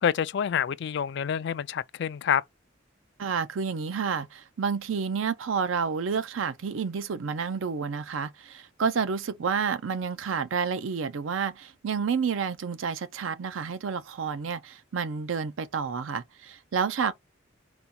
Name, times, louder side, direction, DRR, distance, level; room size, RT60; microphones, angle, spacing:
voice 1, 0.0-2.4, left 8 dB, 60° left, 0.3 m, -27 dB
voice 2, 3.2-17.1, right 6 dB, 80° right, 0.5 m, -30 dB
3.9 x 2.3 x 4.2 m
head